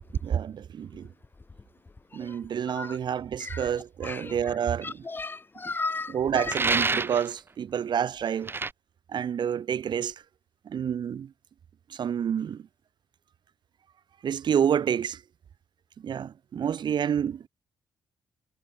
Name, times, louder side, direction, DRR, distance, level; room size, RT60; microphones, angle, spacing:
voice 1, 0.2-1.1 2.1-5.0 6.1-8.5 9.1-10.1 10.7-11.3 11.9-12.6 14.2-15.2 16.0-17.5, right 8 dB, 60° right, 3.6 m, -28 dB
voice 2, 4.8-6.4, left 3 dB, 25° left, 4.2 m, -34 dB
sound 1, 6.5-7.3 8.5-8.7, right 3 dB, 25° right, 5.9 m, -26 dB
cardioid pair, 115°, 9 cm